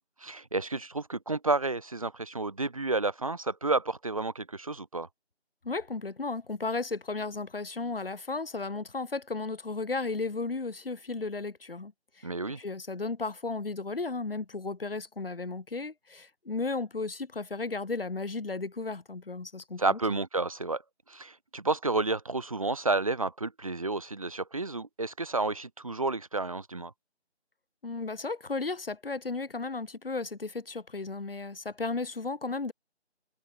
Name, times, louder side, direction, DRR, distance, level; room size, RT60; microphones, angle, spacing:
voice 1, 0.0-5.1 12.2-12.6 19.8-20.8 21.1-26.9, right 3 dB, 30° right, 1.2 m, -31 dB
voice 2, 5.6-12.3 12.6-20.2 27.8-32.7, left 3 dB, 55° left, 1.9 m, -34 dB
figure-of-eight pair, 165°, 34 cm